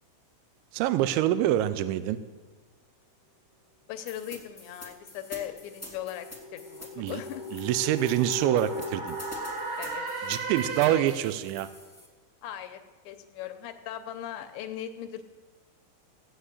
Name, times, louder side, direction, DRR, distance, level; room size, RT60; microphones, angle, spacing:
voice 1, 0.7-2.2 7.0-7.2 7.5-9.2 10.2-11.7, right 12 dB, 85° right, 12 dB, 2.9 m, -26 dB
voice 2, 3.9-7.4 9.8-10.0 12.4-12.8 13.1-15.2, left 11 dB, 80° left, 8 dB, 2.8 m, -39 dB
sound 1, 4.1-12.1, left 1 dB, 10° left, 0.7 m, -47 dB
sound 2, 5.3-11.4, right 1 dB, 50° right, 3.5 m, -36 dB
16.0 x 7.9 x 8.2 m, 1.4 s
omnidirectional pair, 5.5 m